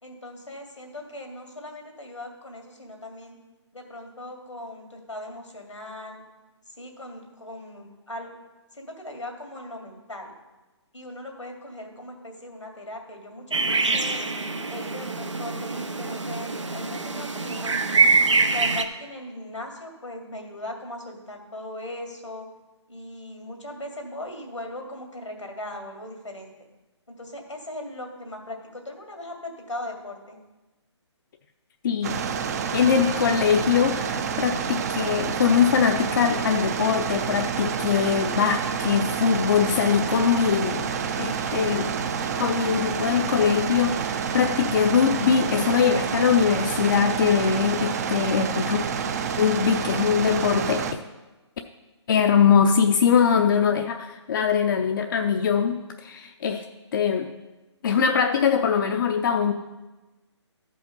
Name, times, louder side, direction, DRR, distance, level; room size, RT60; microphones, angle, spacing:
voice 1, 0.0-3.4 3.7-6.2 6.7-8.3 8.7-10.3 10.9-14.3 14.7-18.1 18.4-22.5 22.9-26.5 27.1-30.4, left 1 dB, 90° left, 2 dB, 2.3 m, -39 dB
sound 1, 13.5-18.8, right 4 dB, 80° right, 0.9 m, -24 dB
voice 2, 31.8-32.2 32.7-40.9 41.2-42.0 42.4-48.8 49.4-51.0 52.1-56.6 56.9-57.3 57.8-59.5, left 7 dB, 45° left, 5 dB, 0.6 m, -22 dB
sound 2, 32.0-50.9, right 6 dB, 35° right, 0.6 m, -28 dB
13.0 x 5.4 x 5.3 m, 1.1 s
figure-of-eight pair, 140°, 15 cm